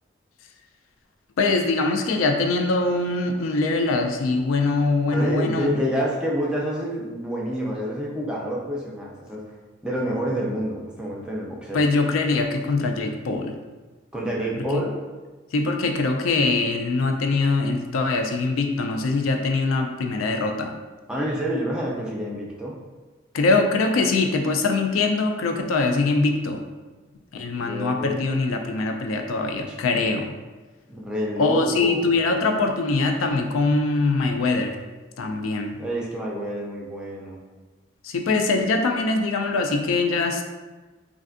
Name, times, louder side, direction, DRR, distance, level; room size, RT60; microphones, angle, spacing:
voice 1, 1.4-5.8 11.7-13.5 14.7-14.8 15.5-20.7 23.3-26.6 27.3-30.3 31.4-34.8 35.2-35.8 38.0-40.4, left 3 dB, 85° left, 4 dB, 0.4 m, -23 dB
voice 2, 5.1-9.6 9.8-11.9 14.1-15.0 21.1-22.8 27.5-28.2 30.9-32.1 35.8-37.4, equal, 5° right, -4 dB, 0.4 m, -28 dB
3.2 x 2.5 x 2.5 m, 1.3 s
head